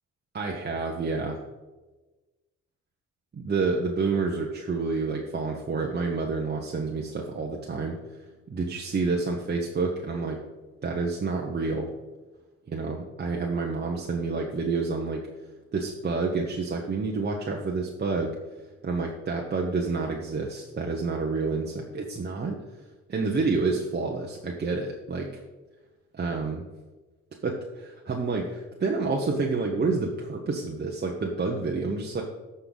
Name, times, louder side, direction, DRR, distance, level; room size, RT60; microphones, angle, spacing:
voice 1, 0.3-1.4 3.3-8.0 8.5-10.4 10.8-11.9 12.7-15.2 15.7-18.4 18.8-22.6 23.1-25.4 26.1-26.7 27.4-32.2, right 4 dB, 35° right, -1 dB, 1.1 m, -29 dB
14.5 x 5.5 x 4.0 m, 1.2 s
cardioid pair, 90°, 30 cm